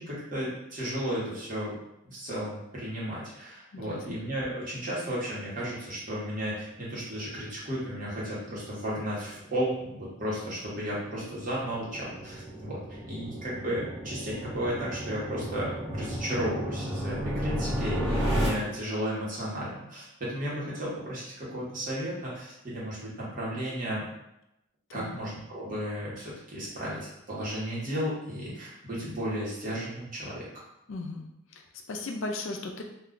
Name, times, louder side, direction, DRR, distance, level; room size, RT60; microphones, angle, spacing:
voice 1, 0.0-1.7 2.0-24.1 24.9-30.6, equal, 40° right, -7 dB, 1.0 m, -34 dB
voice 2, 3.7-4.2 24.9-25.2 30.9-31.3 31.5-32.8, left 2 dB, 70° left, 2 dB, 0.4 m, -37 dB
sound 1, 7.3-18.5, equal, 5° right, 1.0 m, -34 dB
2.4 x 2.2 x 3.7 m, 0.84 s
head